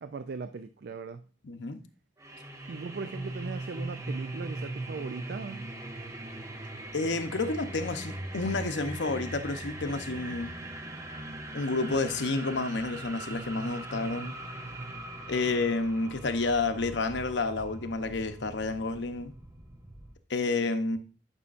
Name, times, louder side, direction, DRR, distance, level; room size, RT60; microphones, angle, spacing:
voice 1, 0.0-1.2 2.7-5.7, right 4 dB, 60° right, 0.4 m, -39 dB
voice 2, 1.4-1.8 6.9-10.5 11.5-14.3 15.3-19.3 20.3-21.0, left 3 dB, 80° left, 0.8 m, -30 dB
sound 1, 2.2-20.1, right 2 dB, 20° right, 0.8 m, -40 dB
11.0 x 5.6 x 2.5 m
head